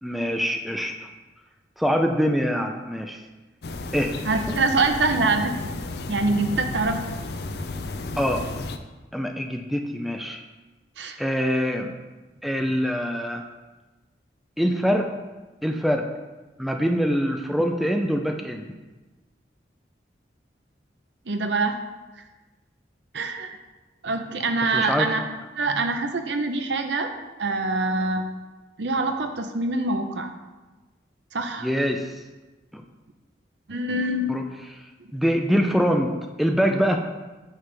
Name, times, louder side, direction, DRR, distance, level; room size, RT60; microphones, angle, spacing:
voice 1, 0.0-1.1 1.8-3.2 3.9-4.2 4.5-4.6 8.2-8.4 9.1-10.4 11.2-11.9 12.4-13.5 14.6-15.1 15.6-16.1 16.6-18.7 24.7-25.1 31.6-32.1 32.7-32.8 34.3-34.4 34.7-34.8 35.1-37.0, equal, ahead, 4 dB, 0.4 m, -24 dB
sound 1, 3.6-8.8, left 2 dB, 60° left, 0.5 m, -33 dB
voice 2, 4.2-5.5 6.1-7.1 11.0-11.2 21.3-21.8 23.1-23.6 24.0-25.2 25.6-27.1 27.4-28.2 28.8-30.3 31.3-31.7 33.7-34.3, right 3 dB, 75° right, 6 dB, 0.7 m, -24 dB
9.0 x 5.7 x 3.4 m, 1.2 s
head